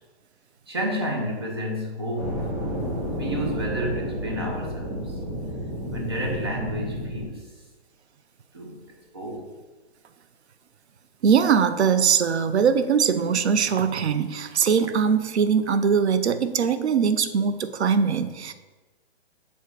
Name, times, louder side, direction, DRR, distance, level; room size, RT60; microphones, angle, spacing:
voice 1, 0.7-2.6 3.2-5.2 5.9-7.5 8.5-8.8 9.1-9.4, equal, 25° right, 0 dB, 0.7 m, -30 dB
sound 1, 2.2-7.3, equal, 40° right, 1.9 m, -31 dB
voice 2, 11.2-18.5, right 6 dB, 85° right, 11 dB, 0.7 m, -21 dB
7.2 x 3.4 x 4.7 m, 1.2 s
hypercardioid pair, 180°, 32 cm